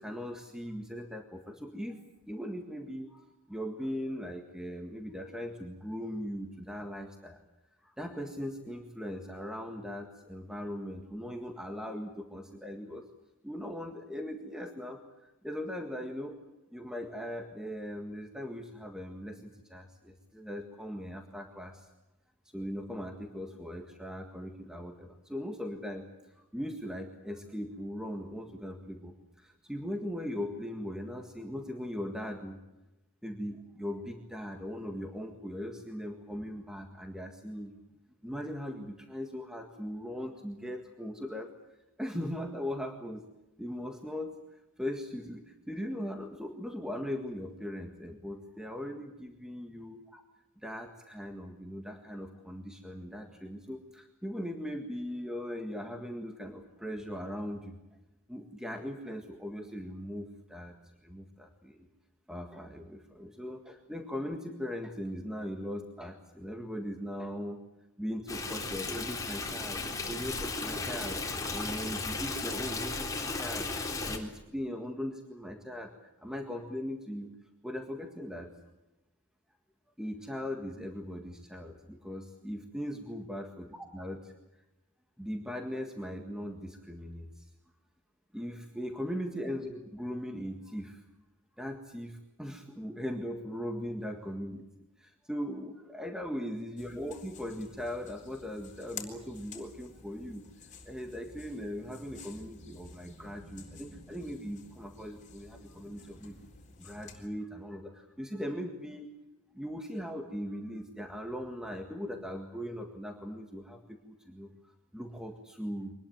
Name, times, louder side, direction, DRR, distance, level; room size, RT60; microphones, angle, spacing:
voice 1, 0.0-7.4 7.8-13.1 13.4-16.4 16.7-21.9 22.5-32.6 33.2-37.8 38.2-41.5 42.0-43.3 43.6-44.4 44.8-50.2 50.6-57.8 58.3-60.7 61.0-61.9 62.3-67.6 68.0-71.2 71.5-77.3 77.6-78.5 80.0-84.3 85.2-87.5 88.3-91.0 91.6-94.6 95.0-100.4 100.8-106.5 106.8-109.1 109.5-115.9, equal, 5° right, 3 dB, 1.8 m, -39 dB
Stream, 68.3-74.2, left 3 dB, 15° left, 3.7 m, -35 dB
sound 1, 96.8-107.3, left 4 dB, 35° left, 4.0 m, -51 dB
24.5 x 20.0 x 8.9 m, 0.96 s
head